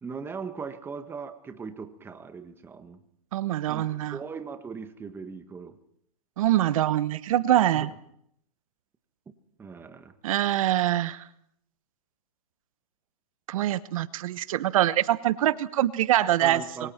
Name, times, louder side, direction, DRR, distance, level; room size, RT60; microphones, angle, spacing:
voice 1, 0.0-3.0 3.7-5.8 7.7-7.9 9.6-10.1 16.4-16.9, right 5 dB, 10° right, 9 dB, 1.6 m, -39 dB
voice 2, 3.3-4.2 6.4-7.9 10.2-11.2 13.5-16.9, right 13 dB, 60° right, 16 dB, 1.1 m, -24 dB
26.5 x 24.0 x 4.4 m, 0.71 s
hypercardioid pair, 140°, 20 cm